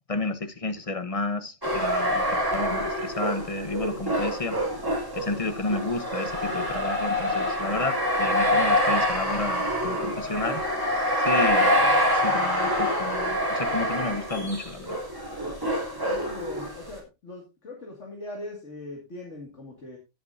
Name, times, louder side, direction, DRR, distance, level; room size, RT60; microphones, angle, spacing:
voice 1, 0.1-4.6 5.1-10.6 11.2-15.0, left 2 dB, 30° left, 1.1 m, -31 dB
sound 1, 1.6-17.0, equal, 20° right, 3.1 m, -26 dB
voice 2, 16.1-20.0, left 2 dB, 80° left, 2.5 m, -40 dB
18.0 x 7.8 x 2.6 m
omnidirectional pair, 1.2 m